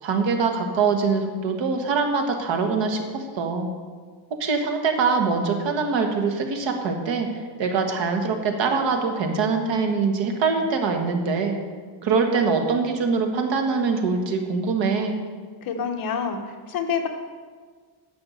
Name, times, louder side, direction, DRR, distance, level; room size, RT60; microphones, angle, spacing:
voice 1, 0.0-3.7 4.4-7.3 7.6-11.6 12.0-15.1, right 4 dB, 65° right, 4 dB, 1.6 m, -23 dB
voice 2, 15.6-17.1, left 6 dB, 45° left, 4 dB, 1.1 m, -27 dB
10.5 x 5.9 x 8.2 m, 1.5 s
cardioid pair, 180°, 47 cm